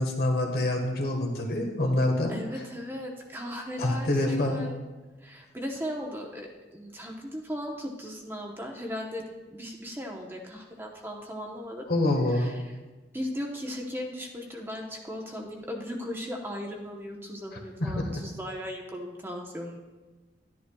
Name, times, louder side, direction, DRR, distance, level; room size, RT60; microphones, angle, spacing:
voice 1, 0.0-2.6 3.8-4.6 11.9-12.5 17.8-18.1, left 1 dB, 55° left, 1 dB, 1.4 m, -26 dB
voice 2, 2.3-4.8 5.2-11.9 12.3-12.5 13.1-19.8, equal, 10° right, 0 dB, 0.9 m, -37 dB
11.5 x 10.5 x 2.3 m, 1.2 s
head